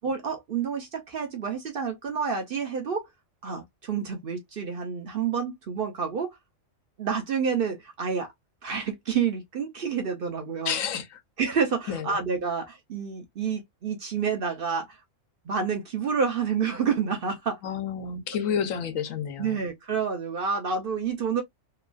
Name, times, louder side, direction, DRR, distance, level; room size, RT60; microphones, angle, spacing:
voice 1, 0.0-3.1 3.4-6.4 7.0-8.3 8.6-10.8 11.4-15.0 15.5-17.6 18.4-18.5 19.4-21.4, right 6 dB, 55° right, 0.7 m, -29 dB
voice 2, 10.6-11.2 11.9-12.2 17.6-19.6, left 7 dB, 85° left, 1.1 m, -30 dB
2.9 x 2.3 x 2.4 m
omnidirectional pair, 1.4 m